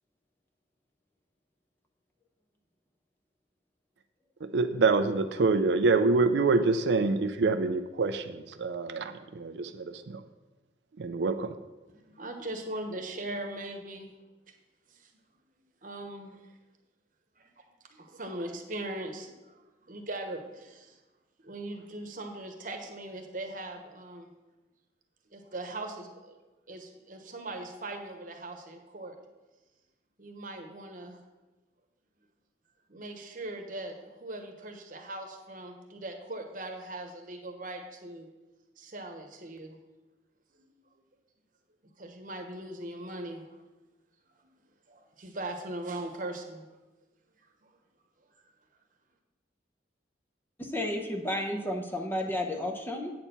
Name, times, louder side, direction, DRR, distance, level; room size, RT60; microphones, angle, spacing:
voice 1, 4.4-10.2 11.0-11.5, right 3 dB, 75° right, 8 dB, 0.4 m, -26 dB
voice 2, 11.9-14.1 14.9-15.1 15.8-16.5 17.4-17.5 17.9-21.0 21.4-24.3 25.3-26.4 26.7-29.1 30.2-31.2 32.9-38.3 38.8-39.8 40.6-40.7 42.0-43.6 44.4-44.5 44.9-46.7 47.6-47.7, right 2 dB, 50° right, 4 dB, 1.1 m, -40 dB
voice 3, 50.6-53.1, left 1 dB, 10° left, 2 dB, 0.8 m, -32 dB
8.5 x 4.4 x 6.7 m, 1.1 s
head